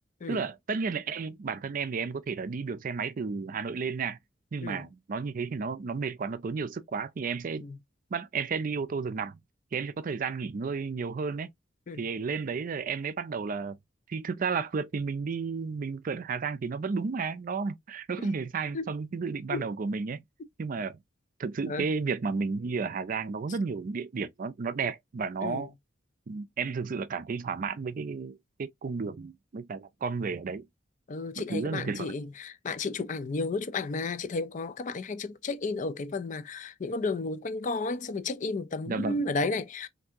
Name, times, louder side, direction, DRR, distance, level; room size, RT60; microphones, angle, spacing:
voice 1, 0.3-4.2 4.5-7.6 8.1-9.4 9.7-11.5 12.0-13.8 14.1-20.2 20.6-21.0 21.4-25.7 26.3-30.6 31.4-32.1 38.9-39.3, right 5 dB, 45° right, 0.4 m, -32 dB
voice 2, 31.1-39.9, left 3 dB, 40° left, 0.4 m, -33 dB
3.4 x 2.6 x 2.7 m
head